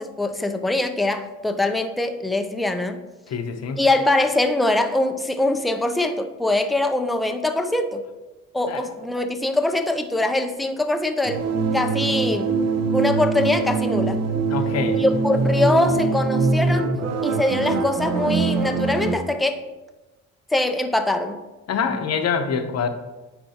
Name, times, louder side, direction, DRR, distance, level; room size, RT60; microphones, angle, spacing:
voice 1, 0.0-3.0 3.8-8.0 8.5-11.4 11.7-12.6 12.9-14.2 15.0-16.9 17.2-19.6 20.5-21.4, left 2 dB, ahead, 6 dB, 0.4 m, -23 dB
voice 2, 3.3-3.8 8.7-8.8 14.5-15.0 21.7-22.9, left 6 dB, 55° left, 7 dB, 0.8 m, -25 dB
sound 1, 11.2-19.1, right 4 dB, 60° right, 0.8 m, -23 dB
9.1 x 4.4 x 2.8 m, 1.1 s
cardioid pair, 90°, 30 cm